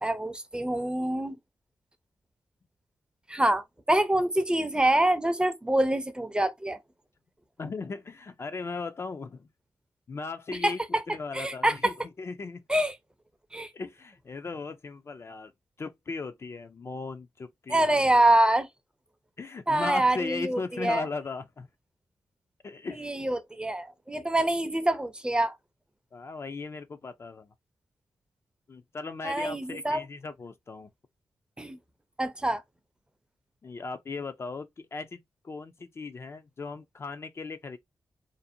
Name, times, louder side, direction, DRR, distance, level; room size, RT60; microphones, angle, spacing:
voice 1, 0.0-1.4 3.3-6.8 10.6-11.0 11.3-11.9 12.7-13.0 13.5-13.7 17.7-18.7 19.7-21.0 22.9-25.5 29.2-30.0 31.6-31.8 32.2-32.6, right 1 dB, 15° right, 0.5 m, -25 dB
voice 2, 7.6-9.5 10.1-12.6 13.6-15.5 15.8-17.9 19.4-21.7 22.6-23.1 24.4-24.5 26.1-27.5 28.7-30.9 33.6-37.8, left 4 dB, 40° left, 0.3 m, -37 dB
2.6 x 2.0 x 2.6 m
cardioid pair, 70°, 7 cm